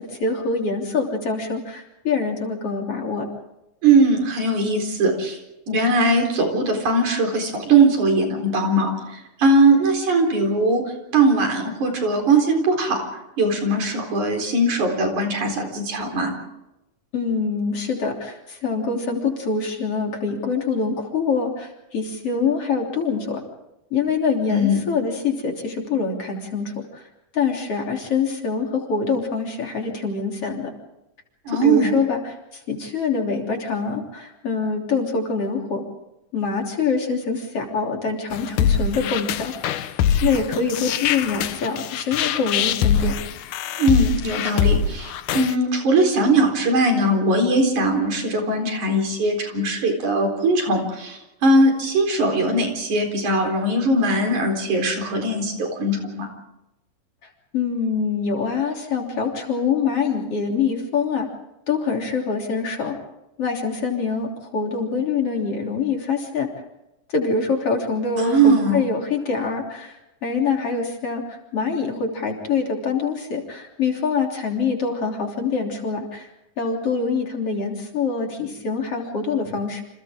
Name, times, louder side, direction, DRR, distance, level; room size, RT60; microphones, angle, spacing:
voice 1, 0.0-3.3 17.1-23.4 23.9-27.1 27.3-30.7 31.5-32.2 32.5-35.8 36.3-39.5 40.2-43.1 57.5-61.3 61.7-63.0 63.4-66.5 67.1-76.3 76.6-79.8, left 5 dB, 45° left, 1 dB, 4.2 m, -25 dB
voice 2, 3.8-5.4 5.7-10.8 11.1-13.0 13.4-16.3 24.5-24.8 31.5-31.9 43.8-56.3 68.2-68.8, right 2 dB, 65° right, 3 dB, 5.6 m, -20 dB
sound 1, 38.3-45.5, left 8 dB, 75° left, 2.4 m, -23 dB
29.0 x 27.5 x 3.7 m, 0.92 s
omnidirectional pair, 3.6 m